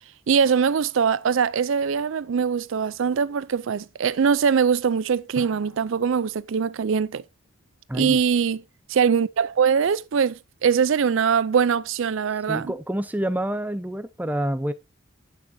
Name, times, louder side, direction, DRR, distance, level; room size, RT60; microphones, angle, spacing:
voice 1, 0.3-7.2 7.9-8.6 8.9-12.7, right 6 dB, 65° right, 0.4 m, -22 dB
Drum, 5.4-7.1, right 2 dB, 90° right, 1.6 m, -44 dB
voice 2, 7.9-8.2 12.5-14.7, right 1 dB, 10° right, 0.5 m, -27 dB
11.0 x 8.7 x 2.7 m
head